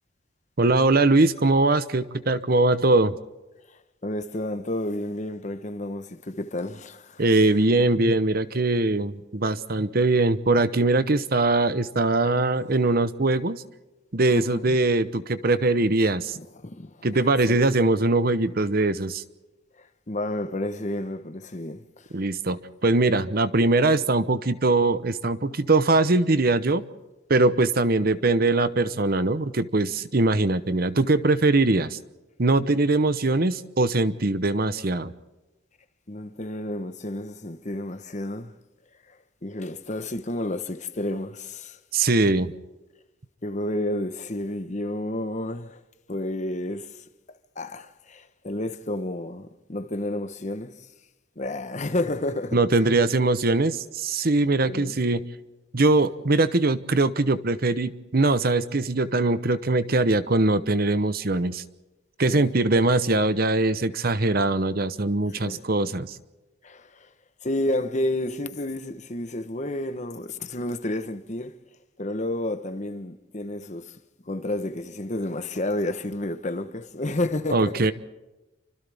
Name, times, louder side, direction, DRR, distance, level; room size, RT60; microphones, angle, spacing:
voice 1, 0.6-3.2 7.2-13.6 14.1-16.4 17.0-19.2 22.1-26.8 27.3-32.0 32.4-35.1 41.9-42.5 52.5-55.2 55.7-61.6 62.2-66.2 77.5-77.9, right 2 dB, 50° right, 0.9 m, -22 dB
voice 2, 4.0-7.2 14.3-14.8 16.4-17.1 17.5-17.6 19.8-22.1 36.1-38.5 39.1-39.2 39.4-41.8 43.4-45.8 46.1-47.0 47.6-50.9 51.4-52.8 54.6-55.0 62.3-62.5 65.4-65.7 66.6-67.1 67.4-71.6 72.0-74.0 74.2-77.9, left 1 dB, 35° left, 1.1 m, -31 dB
29.0 x 25.5 x 3.6 m
head